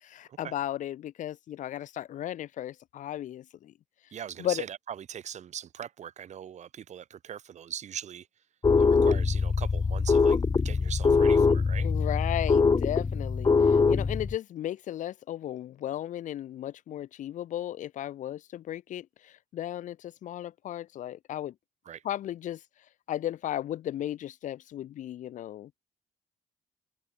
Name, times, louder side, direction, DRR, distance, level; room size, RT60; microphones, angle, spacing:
voice 1, 0.0-3.7 4.4-4.6 11.8-21.5 22.0-22.6 23.1-25.7, left 12 dB, 75° left, 2.0 m, -35 dB
voice 2, 4.1-8.3 8.8-11.9 21.9-22.0, right 9 dB, 60° right, 4.0 m, -41 dB
sound 1, 8.6-14.4, left 4 dB, 30° left, 2.3 m, -23 dB
open air
cardioid pair, 85°, 13 cm